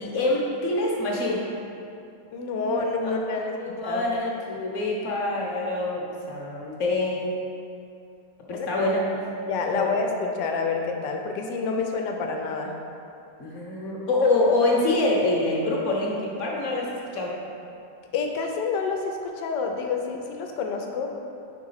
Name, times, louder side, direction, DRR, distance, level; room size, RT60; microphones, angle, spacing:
voice 1, 0.0-1.4 3.0-3.1 3.4-7.3 8.5-9.2 9.7-9.9 13.4-17.3, left 2 dB, 50° left, -3 dB, 1.1 m, -25 dB
voice 2, 2.3-3.6 3.8-4.1 8.6-8.8 9.5-12.7 18.1-21.2, left 4 dB, 85° left, 3 dB, 1.3 m, -28 dB
4.7 x 4.5 x 5.6 m, 2.6 s
omnidirectional pair, 1.9 m